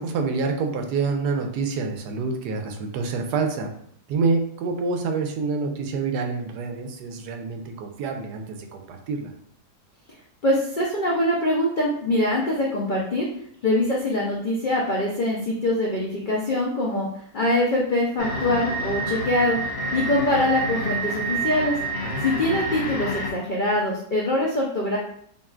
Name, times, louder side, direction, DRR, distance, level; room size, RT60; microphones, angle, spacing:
voice 1, 0.0-3.7 4.1-9.3 22.0-22.2, right 4 dB, 90° right, 4 dB, 1.2 m, -27 dB
voice 2, 10.4-13.3 13.6-17.1 17.3-19.6 19.9-21.8 22.2-25.0, left 1 dB, 75° left, -3 dB, 0.4 m, -23 dB
sound 1, 18.2-23.3, right 2 dB, 50° left, 1.0 m, -28 dB
5.5 x 2.4 x 2.4 m, 0.65 s
omnidirectional pair, 1.7 m